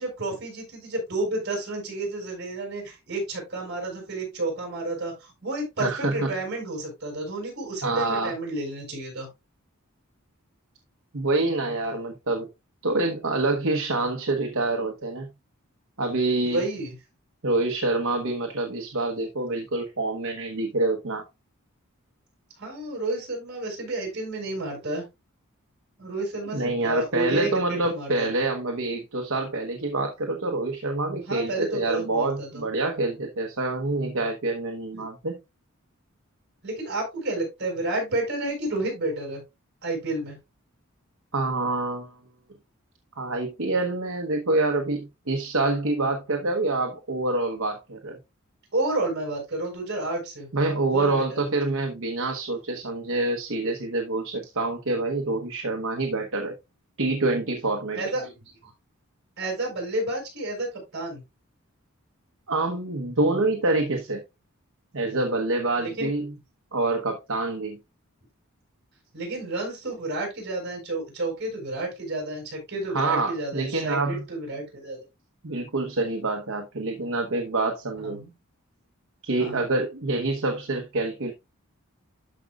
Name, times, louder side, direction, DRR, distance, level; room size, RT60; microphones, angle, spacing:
voice 1, 0.0-9.3 16.4-16.9 22.6-25.0 26.0-28.3 31.3-32.6 34.9-35.0 36.6-39.4 39.8-40.4 48.7-50.5 50.9-51.4 57.9-58.6 59.4-61.2 65.8-66.1 69.1-75.0 78.0-78.3 79.4-79.7, right 2 dB, 50° right, 5.7 m, -31 dB
voice 2, 5.8-6.3 7.8-8.3 11.1-12.5 12.8-15.3 16.0-16.6 17.4-21.2 26.5-35.4 41.3-42.1 43.2-48.2 50.5-56.5 57.0-58.0 62.5-64.2 64.9-66.3 66.7-67.8 72.9-74.2 75.4-78.2 79.2-81.3, right 2 dB, 70° right, 1.2 m, -26 dB
12.5 x 5.2 x 2.4 m
head